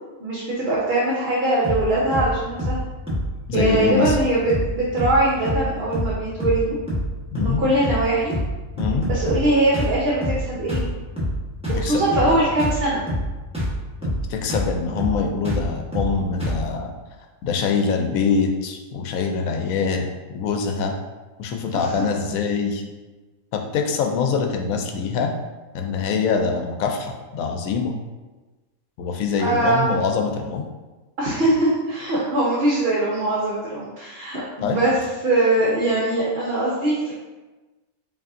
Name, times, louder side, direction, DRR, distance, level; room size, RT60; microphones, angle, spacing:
voice 1, 0.2-2.8 3.5-6.8 7.4-8.3 9.0-10.8 11.7-13.0 21.7-22.0 29.4-30.0 31.2-37.1, right 1 dB, 55° right, -5 dB, 0.9 m, -22 dB
sound 1, 1.6-1.9 2.1-2.3 2.6-2.8 3.1-3.3 3.5-3.8 4.0-4.2 4.5-4.7 5.0-5.2 5.4-5.7 5.9-6.1 6.4-6.6 6.9-7.1 7.3-7.6 7.8-8.0 8.3-8.5 8.8-9.5 9.7-9.9 10.2-10.4 10.7-10.9 11.2-11.4 11.6-11.9 12.1-12.3 12.6-12.8 13.1-13.3 13.5-13.8 14.0-14.2 14.5-14.7 15.0-15.2 15.4-15.7 15.9-16.1 16.4-16.6, equal, 5° right, 1.0 m, -25 dB
voice 2, 3.5-4.2 7.3-7.6 8.8-9.1 11.7-12.0 12.3-12.4 14.0-16.9 17.4-20.1 20.3-20.9 21.4-22.8 23.5-25.3 25.7-27.9 29.0-30.6 34.6-34.8, left 5 dB, 85° left, 4 dB, 1.0 m, -24 dB
5.0 x 2.7 x 2.6 m, 1.2 s
omnidirectional pair, 1.4 m